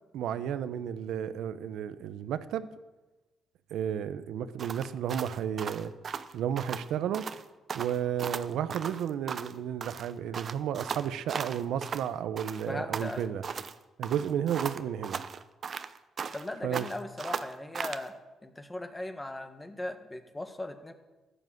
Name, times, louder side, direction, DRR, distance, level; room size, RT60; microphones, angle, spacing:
voice 1, 0.1-2.7 3.7-5.9 6.3-7.3 7.7-13.4 14.0-15.2 16.6-16.9, right 9 dB, 80° right, 13 dB, 0.8 m, -32 dB
sound 1, 4.6-6.9 7.1-7.4 7.7-9.6 9.8-12.1 12.4-13.7 14.0-16.5 16.7-18.1, right 6 dB, 50° right, 0.8 m, -37 dB
voice 2, 12.7-13.3 16.3-18.1 18.4-20.9, left 1 dB, 15° left, 7 dB, 1.7 m, -38 dB
14.5 x 10.0 x 7.8 m, 1.1 s
cardioid pair, 90°, 0 cm